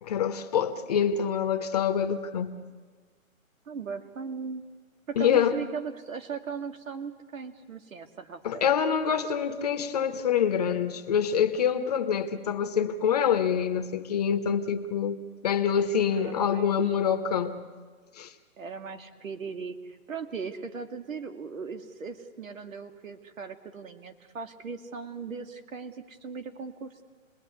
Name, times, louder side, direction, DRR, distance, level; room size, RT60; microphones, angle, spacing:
voice 1, 0.0-2.5 5.2-5.6 8.4-15.2 15.4-17.6 18.2-18.3, left 8 dB, 30° left, 8 dB, 1.1 m, -26 dB
voice 2, 3.7-4.6 5.1-8.8 16.1-16.9 18.6-27.0, right 5 dB, 70° right, 7 dB, 2.5 m, -38 dB
28.5 x 20.5 x 9.5 m, 1.5 s
hypercardioid pair, 170°, 42 cm